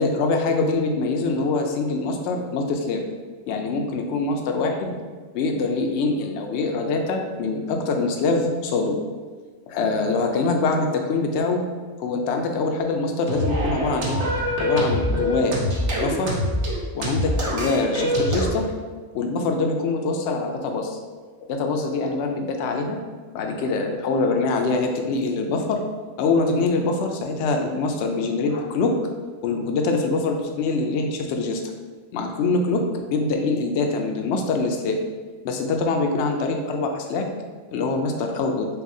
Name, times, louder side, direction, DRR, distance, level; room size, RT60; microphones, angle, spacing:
voice 1, 0.0-3.0 3.5-4.9 5.3-9.0 9.7-11.6 12.0-14.2 14.6-15.6 16.0-16.4 16.9-18.7 19.1-21.0 21.5-23.0 23.3-25.8 26.2-28.9 29.4-31.6 32.1-35.0 35.4-37.3 37.7-38.7, left 3 dB, 65° left, 3 dB, 0.8 m, -24 dB
sound 1, 13.3-18.5, equal, 65° right, 1.1 m, -24 dB
6.7 x 2.3 x 2.6 m, 1.4 s
omnidirectional pair, 1.3 m